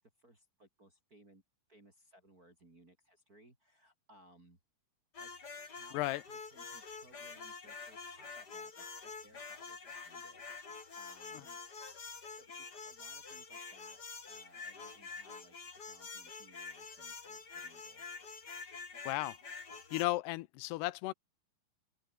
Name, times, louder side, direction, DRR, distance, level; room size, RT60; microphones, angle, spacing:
voice 1, 0.0-1.4 1.7-4.6 5.2-6.0 6.3-11.6 12.3-14.0 14.3-18.1, right 1 dB, 20° right, 4.8 m, -63 dB
sound 1, 5.1-20.1, left 4 dB, 25° left, 2.7 m, -47 dB
voice 2, 19.1-19.4 19.9-21.1, left 19 dB, 85° left, 2.7 m, -34 dB
open air
omnidirectional pair, 4.9 m